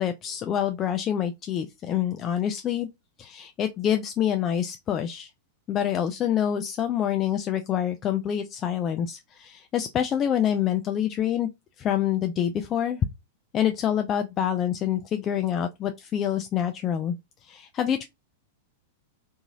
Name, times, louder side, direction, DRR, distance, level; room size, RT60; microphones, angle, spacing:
voice 1, 0.0-2.9 3.2-5.3 5.7-11.5 11.8-13.0 13.5-17.2 17.4-18.0, left 10 dB, 30° left, 0.3 m, -26 dB
2.9 x 2.7 x 2.5 m
hypercardioid pair, 110°, 0 cm